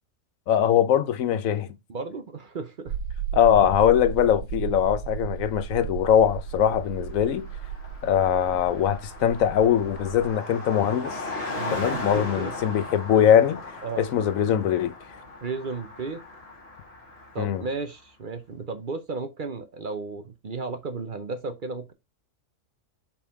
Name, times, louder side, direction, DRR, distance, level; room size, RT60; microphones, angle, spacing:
voice 1, 0.5-1.7 3.3-7.5 8.0-11.2 11.7-14.9 17.4-17.6, left 9 dB, 85° left, 1.2 m, -22 dB
voice 2, 1.9-3.0 11.6-12.6 13.8-14.1 15.4-16.2 17.3-21.9, right 4 dB, 45° right, 0.8 m, -34 dB
sound 1, 2.9-10.3, right 8 dB, 90° right, 1.0 m, -35 dB
Car passing by, 6.5-6.6 6.8-17.8, left 2 dB, 50° left, 2.8 m, -38 dB
5.3 x 5.0 x 3.6 m
omnidirectional pair, 1.4 m